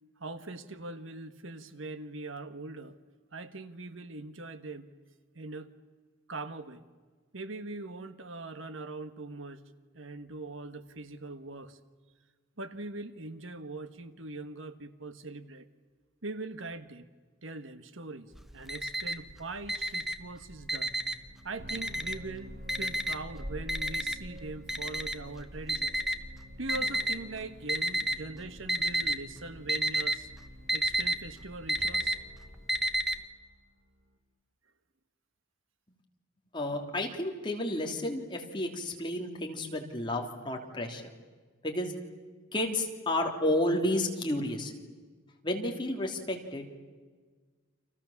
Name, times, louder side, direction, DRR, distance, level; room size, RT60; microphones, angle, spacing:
voice 1, 0.2-3.0 3.3-4.9 5.3-5.7 6.3-6.8 7.3-9.6 9.9-11.8 12.6-15.7 16.2-17.1 17.4-20.9 21.4-25.9 26.6-30.3 30.7-32.1, right 2 dB, 75° right, 10 dB, 1.5 m, -41 dB
Alarm, 18.4-19.3 19.6-21.3 21.7-22.3 22.7-27.2 27.7-28.3 28.6-29.2 29.5-33.2, right 1 dB, ahead, 1.0 m, -30 dB
sound 1, 20.8-34.1, equal, 55° right, 2.6 m, -50 dB
voice 2, 36.5-41.1 41.6-41.9 42.5-44.7 45.4-46.7, left 1 dB, 25° left, 2 dB, 3.2 m, -31 dB
30.0 x 26.5 x 7.3 m, 1.5 s
head